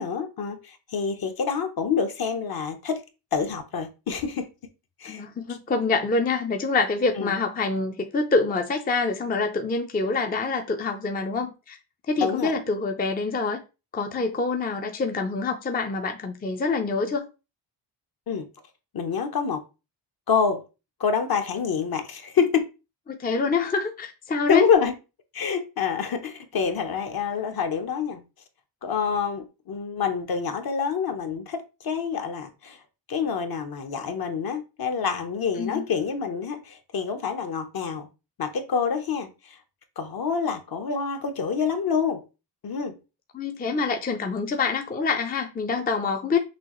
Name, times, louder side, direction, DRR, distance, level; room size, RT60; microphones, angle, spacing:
voice 1, 0.0-3.0 3.3-4.5 5.0-5.2 7.2-7.3 12.2-12.5 18.3-18.5 18.9-19.6 20.3-20.6 21.0-22.6 24.5-24.9 25.3-28.2 28.8-32.8 33.1-38.1 38.4-39.6 40.0-42.2 42.6-43.0, left 6 dB, 50° left, 0.9 m, -27 dB
voice 2, 5.0-11.8 12.1-13.6 13.9-17.3 23.1-24.7 35.6-35.8 43.3-46.4, left 4 dB, 20° left, 0.5 m, -26 dB
6.1 x 2.4 x 3.0 m
cardioid pair, 110°, 46 cm